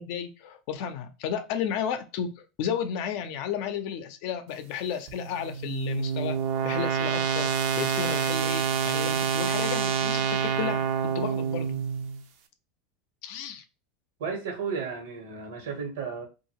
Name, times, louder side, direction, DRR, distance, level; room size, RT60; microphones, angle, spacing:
voice 1, 0.0-11.8 13.2-13.6, left 8 dB, 60° left, 0.5 m, -33 dB
sound 1, 5.1-12.2, right 7 dB, 55° right, 0.5 m, -27 dB
voice 2, 14.2-16.3, right 5 dB, 90° right, 1.2 m, -33 dB
2.7 x 2.5 x 2.9 m
supercardioid pair, 145°, 0 cm